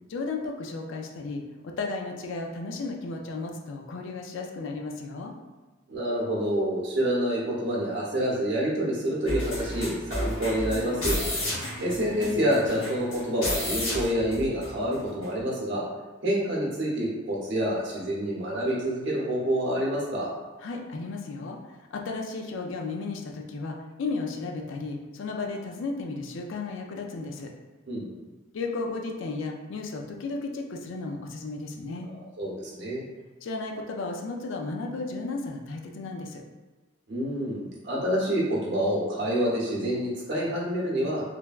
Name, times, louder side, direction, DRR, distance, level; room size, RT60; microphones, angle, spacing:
voice 1, 0.1-5.3 20.6-27.5 28.5-32.1 33.4-36.4, left 3 dB, 65° left, 2 dB, 0.4 m, -34 dB
voice 2, 5.9-11.2 11.8-15.8 16.2-20.3 27.9-28.0 32.4-33.1 37.1-41.2, equal, 60° right, -5 dB, 0.8 m, -27 dB
sound 1, 9.3-15.0 15.2-15.3, left 1 dB, 85° left, 1.1 m, -32 dB
3.2 x 2.1 x 2.3 m, 1.3 s
head